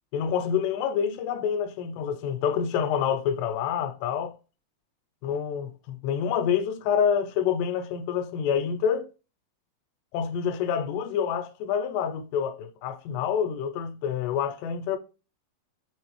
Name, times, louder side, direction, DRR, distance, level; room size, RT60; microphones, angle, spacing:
voice 1, 0.1-4.3 5.2-9.1 10.1-15.0, left 8 dB, 90° left, 2.7 m, -27 dB
6.5 x 2.5 x 3.0 m
omnidirectional pair, 4.7 m